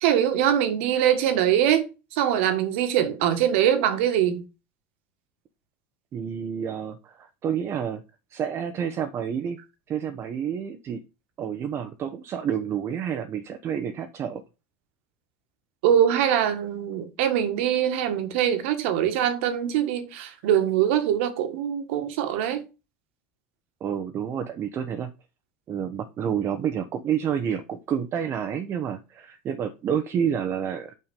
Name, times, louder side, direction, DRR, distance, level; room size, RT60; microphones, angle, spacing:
voice 1, 0.0-1.8 2.1-4.4 15.8-22.7, right 10 dB, 75° right, 1.8 m, -23 dB
voice 2, 6.1-8.0 8.3-9.6 9.9-11.0 11.4-14.4 23.8-25.1 25.7-30.9, right 8 dB, 40° right, 1.0 m, -29 dB
6.2 x 5.9 x 5.4 m
supercardioid pair, 100°, 7 cm